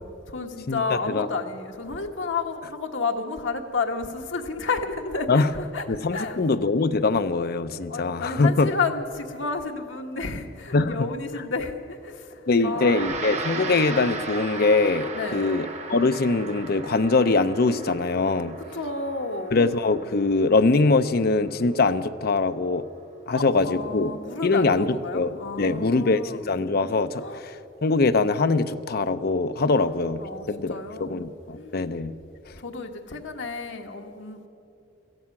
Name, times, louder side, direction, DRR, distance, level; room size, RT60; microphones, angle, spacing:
voice 1, 0.0-5.8 6.1-6.4 7.9-13.0 15.1-15.6 18.6-19.6 23.3-26.4 27.2-27.4 29.8-29.9 30.2-31.2 31.5-31.8 32.6-34.5, left 4 dB, 80° left, 4 dB, 1.3 m, -31 dB
voice 2, 0.7-1.3 5.3-5.5 5.9-8.7 10.7-11.1 12.5-18.5 19.5-22.8 23.3-24.2 24.4-27.6 27.8-30.2 30.5-32.1, left 3 dB, 55° left, 11 dB, 0.6 m, -23 dB
Gong, 12.7-22.2, right 4 dB, 35° right, 1.6 m, -37 dB
17.0 x 14.0 x 5.9 m, 2.8 s
head